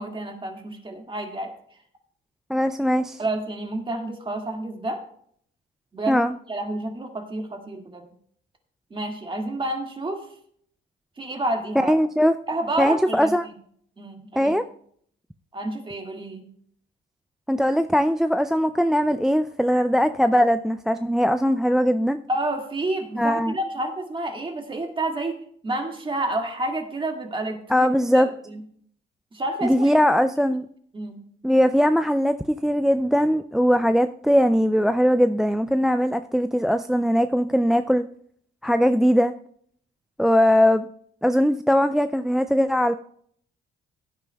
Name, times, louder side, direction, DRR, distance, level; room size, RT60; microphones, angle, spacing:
voice 1, 0.0-1.5 3.2-5.0 5.9-8.1 8.9-10.3 11.2-12.0 12.5-13.3 14.0-14.5 15.5-16.4 22.3-27.9 28.1-28.6 29.3-30.0 30.9-31.2, right 2 dB, 25° right, 3 dB, 2.0 m, -29 dB
voice 2, 2.5-3.2 6.1-6.3 11.9-12.3 12.8-13.5 14.4-14.6 17.5-22.2 23.2-23.5 27.7-28.3 29.6-30.7 31.4-38.0 38.6-39.3 40.2-40.9 41.2-42.9, equal, ahead, 10 dB, 0.3 m, -20 dB
16.5 x 9.7 x 2.3 m, 0.62 s
cardioid pair, 90°, 20 cm